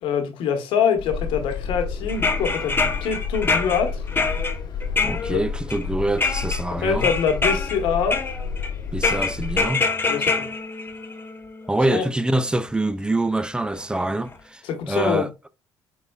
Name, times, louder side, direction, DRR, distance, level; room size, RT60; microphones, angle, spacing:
voice 1, 0.0-4.0 5.3-5.4 6.8-8.2 10.1-10.5 11.9-12.0 14.6-15.3, left 7 dB, 80° left, 1.2 m, -24 dB
sound 1, 1.0-9.7, left 5 dB, 60° left, 1.0 m, -30 dB
sound 2, 2.1-5.8 6.2-6.6 7.0-7.8 8.1-8.7 9.0-11.7 12.7-12.8 13.8-14.0 14.3-14.4, left 4 dB, 25° left, 0.9 m, -25 dB
voice 2, 5.0-7.1 8.9-9.8 11.7-15.3, right 1 dB, 10° right, 0.4 m, -25 dB
5.5 x 3.9 x 2.3 m
supercardioid pair, 70°, 9 cm